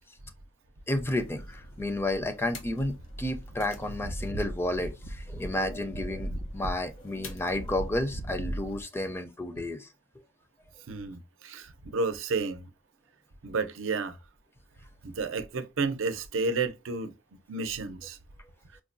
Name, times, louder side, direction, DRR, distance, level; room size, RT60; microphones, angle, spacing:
sound 1, 0.9-8.8, equal, 85° left, 1.1 m, -39 dB
voice 1, 0.9-9.9, left 1 dB, 10° left, 0.4 m, -31 dB
voice 2, 10.9-12.7 13.4-14.2 15.0-17.1 17.5-18.2, right 4 dB, 90° right, 0.6 m, -31 dB
4.7 x 2.1 x 2.5 m
head